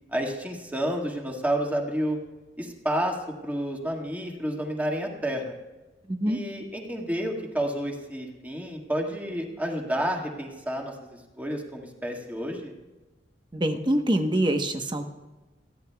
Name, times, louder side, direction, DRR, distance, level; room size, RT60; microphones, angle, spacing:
voice 1, 0.1-2.2 2.6-3.2 3.4-5.5 6.3-10.9 11.4-12.7, right 1 dB, 10° right, 0 dB, 1.8 m, -30 dB
voice 2, 6.1-6.4 13.5-15.0, right 1 dB, 25° right, 6 dB, 1.0 m, -25 dB
29.5 x 11.0 x 2.3 m, 1.2 s
head